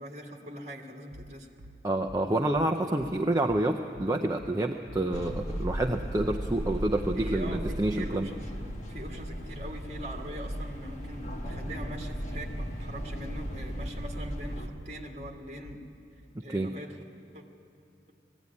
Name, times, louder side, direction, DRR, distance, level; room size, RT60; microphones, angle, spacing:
voice 1, 0.0-1.5 7.1-15.8 16.4-17.0 17.3-17.4, equal, 35° right, 1 dB, 1.9 m, -42 dB
sound 1, 1.1-15.9, equal, 65° right, 0.8 m, -49 dB
voice 2, 1.8-8.3 16.4-16.7, right 1 dB, 20° right, 3 dB, 0.5 m, -28 dB
sound 2, 5.1-14.7, equal, 40° left, 1.4 m, -36 dB
19.5 x 15.5 x 9.6 m, 2.6 s
head